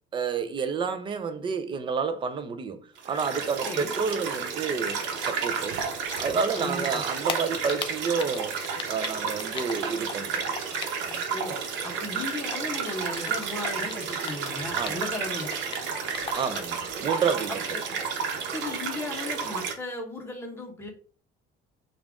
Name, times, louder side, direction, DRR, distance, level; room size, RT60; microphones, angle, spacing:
voice 1, 0.1-5.8 6.2-8.6 8.9-10.6 11.0-11.2 14.8-15.0 16.4-17.6, right 5 dB, 25° right, 0.4 m, -30 dB
sound 1, 3.0-19.7, right 6 dB, 85° right, 0.9 m, -32 dB
Typing, 5.2-11.3 11.6-15.2 15.4-16.8, left 7 dB, 30° left, 0.5 m, -37 dB
voice 2, 6.6-7.0 11.3-11.6 11.8-15.5 17.7-17.8 18.5-20.9, left 2 dB, 15° left, 1.0 m, -36 dB
5.4 x 2.5 x 3.6 m
cardioid pair, 160°, 18 cm